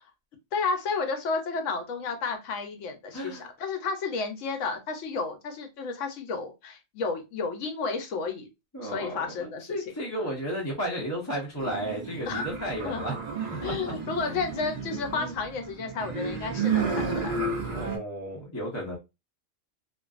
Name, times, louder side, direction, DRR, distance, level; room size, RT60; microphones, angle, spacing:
voice 1, 0.5-8.5 8.8-9.8 12.3-12.5 12.8-13.2 13.6-17.4, left 4 dB, 75° left, 1.0 m, -32 dB
voice 2, 3.1-3.5 8.7-13.2 13.5-13.9 15.1-15.3 17.7-19.0, equal, 20° left, 0.6 m, -33 dB
sound 1, 11.6-18.0, right 4 dB, 50° right, 0.5 m, -32 dB
2.5 x 2.2 x 2.3 m
omnidirectional pair, 1.3 m